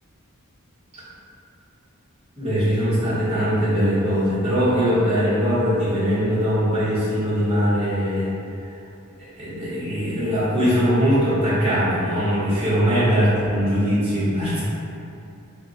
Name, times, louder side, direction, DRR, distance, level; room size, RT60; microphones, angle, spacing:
voice 1, 2.4-8.3 9.4-14.6, equal, 30° right, -12 dB, 1.0 m, -21 dB
2.2 x 2.1 x 3.8 m, 2.7 s
head